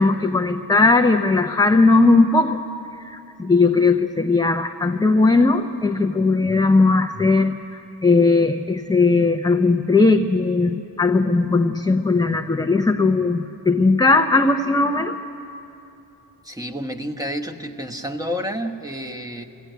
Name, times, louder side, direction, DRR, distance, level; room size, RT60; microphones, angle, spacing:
voice 1, 0.0-2.6 3.0-15.1, left 3 dB, 10° left, 4 dB, 0.6 m, -18 dB
voice 2, 16.4-19.4, equal, 10° right, 3 dB, 1.2 m, -29 dB
22.0 x 16.0 x 9.2 m, 2.9 s
cardioid pair, 100°, 43 cm